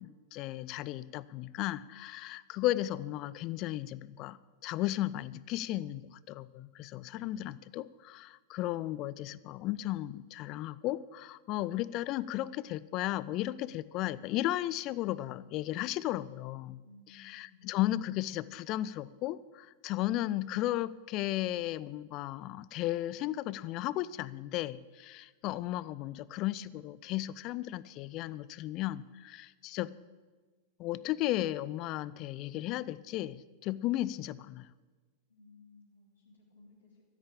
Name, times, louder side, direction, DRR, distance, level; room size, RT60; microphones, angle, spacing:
voice 1, 0.0-16.8 17.1-29.9 30.8-34.7, left 15 dB, 40° left, 19 dB, 0.4 m, -35 dB
voice 2, 16.8-17.8 35.3-37.0, left 3 dB, 70° left, -5 dB, 2.9 m, -59 dB
13.5 x 8.3 x 8.7 m, 1.3 s
figure-of-eight pair, 90°, 0 cm